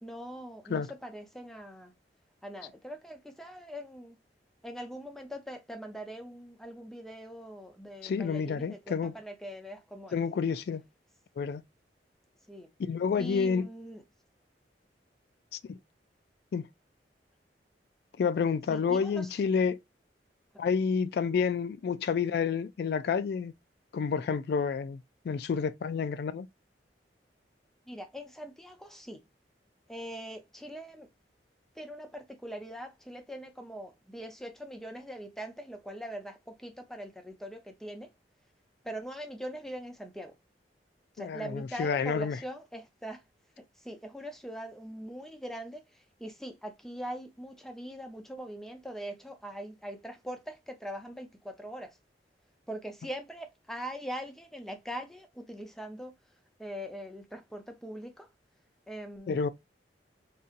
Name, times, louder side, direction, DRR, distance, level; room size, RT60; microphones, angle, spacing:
voice 1, 0.0-1.9 2.4-4.2 4.6-10.2 12.5-12.7 13.2-14.0 18.7-19.3 27.9-29.2 29.9-31.1 31.8-38.1 38.8-40.3 41.2-43.2 43.8-45.8 46.2-51.9 52.7-56.1 56.6-58.3 58.9-59.4, equal, ahead, 0.7 m, -42 dB
voice 2, 8.0-9.1 10.1-10.8 11.4-11.6 12.8-13.7 15.5-15.8 16.5-16.7 18.2-19.8 20.6-23.5 23.9-26.5 41.2-42.4 59.3-59.5, left 6 dB, 60° left, 0.3 m, -29 dB
3.8 x 2.7 x 2.4 m
head